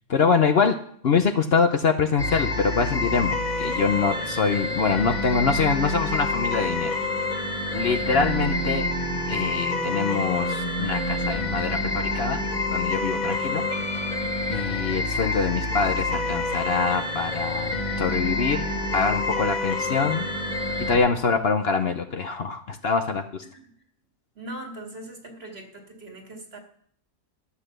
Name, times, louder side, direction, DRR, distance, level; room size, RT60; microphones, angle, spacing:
voice 1, 0.1-0.8 1.0-6.9 7.7-8.9 9.3-12.4 12.7-13.6 14.5-18.7 18.9-20.3 20.9-23.4, left 5 dB, 55° left, 8 dB, 0.9 m, -24 dB
sound 1, 2.2-21.0, left 2 dB, 30° left, 1.7 m, -27 dB
voice 2, 24.4-26.6, right 1 dB, 50° right, 2 dB, 2.4 m, -40 dB
13.0 x 8.1 x 6.7 m, 0.63 s
omnidirectional pair, 1.4 m